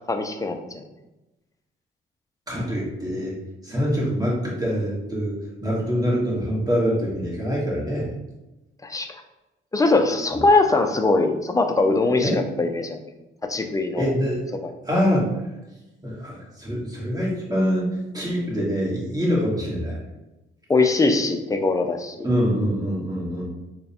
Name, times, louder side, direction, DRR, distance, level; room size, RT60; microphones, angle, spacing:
voice 1, 0.1-0.8 8.8-9.1 9.7-13.0 13.4-14.1 14.6-14.7 20.7-22.3, left 3 dB, 15° left, 5 dB, 0.4 m, -21 dB
voice 2, 2.5-3.4 3.6-8.1 12.2-12.4 14.0-14.4 14.8-15.3 16.0-20.0 22.2-23.5, equal, 20° right, -5 dB, 1.5 m, -24 dB
3.4 x 2.2 x 4.2 m, 0.99 s
cardioid pair, 90°, 20 cm